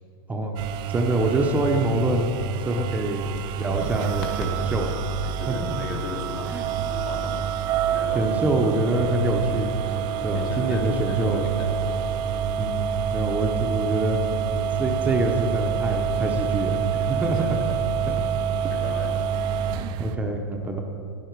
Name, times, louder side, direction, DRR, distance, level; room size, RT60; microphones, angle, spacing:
voice 1, 0.3-2.3 2.6-3.2 3.6-4.9 5.2-5.6 6.5-6.7 8.1-9.7 10.2-11.5 12.6-14.2 14.7-17.4 18.1-18.2 18.6-18.7 20.0-20.8, right 2 dB, 10° right, 2 dB, 0.8 m, -25 dB
sound 1, 0.6-20.1, right 7 dB, 35° right, 0.5 m, -27 dB
sound 2, 3.3-10.9, left 3 dB, 35° left, 1.9 m, -46 dB
voice 2, 5.4-7.5 7.9-8.4 10.3-11.8 16.1-16.4 17.3-17.8 18.6-19.2, left 3 dB, 50° left, 1 dB, 2.0 m, -36 dB
11.5 x 10.5 x 4.6 m, 2.7 s
hypercardioid pair, 135°, 12 cm